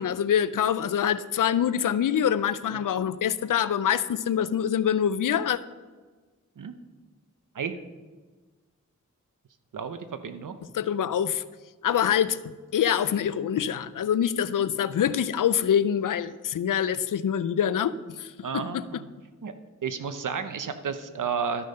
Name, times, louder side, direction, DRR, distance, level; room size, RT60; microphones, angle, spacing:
voice 1, 0.0-5.6 10.7-11.4 11.8-18.8, left 9 dB, 90° left, 16 dB, 0.5 m, -25 dB
voice 2, 9.7-10.6 18.4-19.1 19.4-19.5 19.8-21.7, right 6 dB, 85° right, 10 dB, 0.8 m, -32 dB
12.0 x 6.6 x 5.4 m, 1.4 s
wide cardioid pair, 70°, 31 cm